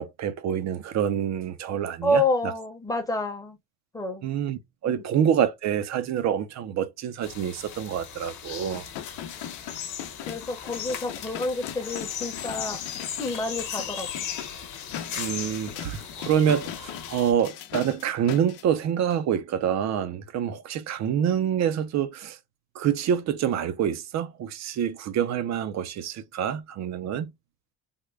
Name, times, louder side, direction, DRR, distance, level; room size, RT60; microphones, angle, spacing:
voice 1, 0.0-2.2 4.2-8.9 15.2-22.4 22.8-27.3, right 9 dB, 45° right, 0.5 m, -26 dB
voice 2, 2.0-3.6 3.9-4.3 4.8-5.0 10.3-12.8 13.2-14.1, left 1 dB, 10° left, 0.8 m, -28 dB
sound 1, 7.2-17.3, left 8 dB, 50° left, 1.0 m, -37 dB
sound 2, 8.7-18.6 19.1-19.2, left 10 dB, 85° left, 0.7 m, -40 dB
3.6 x 2.1 x 3.2 m
cardioid pair, 140°, 39 cm